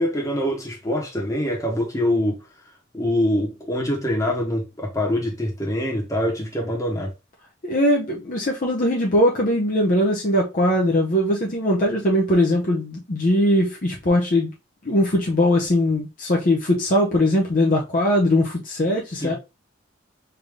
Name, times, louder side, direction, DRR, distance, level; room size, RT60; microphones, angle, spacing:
voice 1, 0.0-2.4 2.9-7.1 19.2-19.4, left 1 dB, 15° left, 1.0 m, -24 dB
voice 2, 7.6-14.5 14.8-19.4, left 1 dB, 45° left, 0.6 m, -20 dB
3.4 x 2.6 x 3.4 m
head